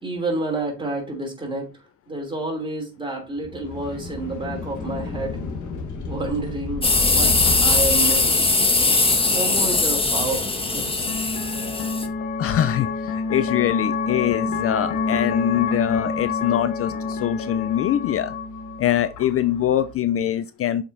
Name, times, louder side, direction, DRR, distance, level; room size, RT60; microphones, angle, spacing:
voice 1, 0.0-1.7 2.1-5.4 6.1-7.3 7.6-8.5 9.3-11.0, right 2 dB, 15° right, 2.9 m, -29 dB
sound 1, 3.4-9.0, left 3 dB, 75° left, 1.3 m, -31 dB
sound 2, 6.8-12.1, left 3 dB, 20° left, 1.1 m, -20 dB
sound 3, 9.9-19.9, left 4 dB, 90° left, 0.9 m, -28 dB
voice 2, 12.4-18.3 18.8-20.8, left 11 dB, 50° left, 0.4 m, -23 dB
7.0 x 5.1 x 2.6 m
cardioid pair, 90°, 30 cm